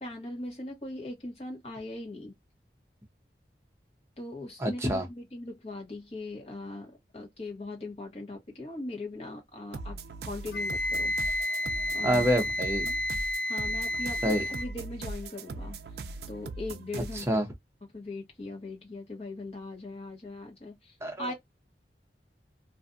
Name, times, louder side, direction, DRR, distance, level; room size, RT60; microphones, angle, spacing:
voice 1, 0.0-2.4 4.2-9.9 10.2-11.1 11.4-11.5 11.9-12.3 12.8-12.9 13.5-15.8 16.3-17.4 17.9-21.3, left 2 dB, 35° left, 1.0 m, -40 dB
voice 2, 4.6-5.1 12.0-12.9 14.2-14.4 17.1-17.5 21.0-21.3, equal, 15° right, 0.7 m, -27 dB
sound 1, 9.7-17.4, right 3 dB, 65° right, 0.4 m, -40 dB
Wind instrument woodwind instrument, 10.5-14.7, left 1 dB, 65° left, 0.4 m, -31 dB
2.5 x 2.3 x 2.5 m
head